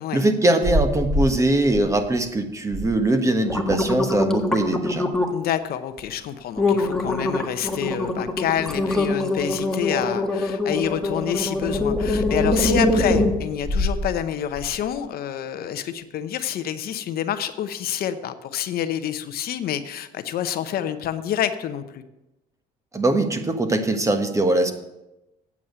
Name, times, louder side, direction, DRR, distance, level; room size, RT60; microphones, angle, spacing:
voice 1, 0.1-5.1 22.9-24.7, right 2 dB, 20° right, 7 dB, 1.3 m, -21 dB
sound 1, 0.6-1.3 1.7-2.2 2.7-2.9 3.3-5.5 6.0-6.1 6.6-14.1 14.6-14.7, left 2 dB, 5° left, 1.5 m, -23 dB
voice 2, 5.3-22.0, left 10 dB, 65° left, 10 dB, 0.8 m, -28 dB
8.7 x 7.2 x 8.0 m, 0.95 s
cardioid pair, 110°, 17 cm